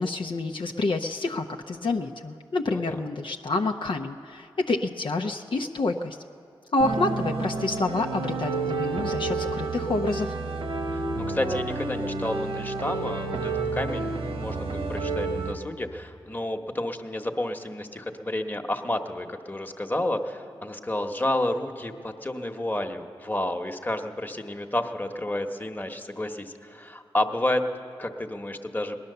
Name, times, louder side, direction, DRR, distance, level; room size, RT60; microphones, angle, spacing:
voice 1, 0.0-6.2 6.7-10.3, left 2 dB, 60° left, 3 dB, 0.7 m, -28 dB
voice 2, 2.6-3.0 10.9-27.6 28.0-29.0, left 1 dB, 20° left, 4 dB, 1.2 m, -30 dB
sound 1, 6.8-15.6, right 3 dB, 70° right, 1.3 m, -30 dB
19.0 x 10.5 x 6.8 m, 2.6 s
cardioid pair, 40°, 10 cm